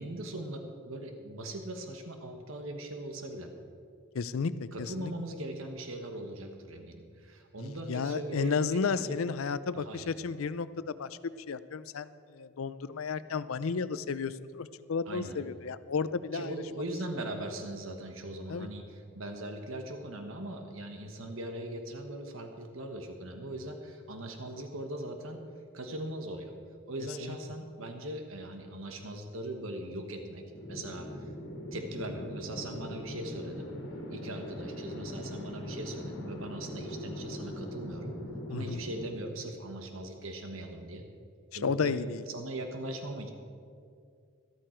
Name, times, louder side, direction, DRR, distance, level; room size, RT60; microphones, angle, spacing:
voice 1, 0.0-3.5 4.7-9.1 9.7-10.1 15.1-15.4 16.3-25.4 25.7-26.5 26.9-30.4 30.7-31.3 31.7-33.7 34.1-38.1 38.5-41.0 41.5-43.3, right 1 dB, 80° right, 5 dB, 1.3 m, -40 dB
voice 2, 4.1-5.1 7.6-16.5 18.5-18.7 27.2-27.4 38.5-38.8 41.6-42.2, left 5 dB, 85° left, 15 dB, 0.5 m, -33 dB
sound 1, 30.5-39.1, left 1 dB, 60° left, 2.0 m, -41 dB
13.5 x 13.5 x 4.5 m, 2.3 s
head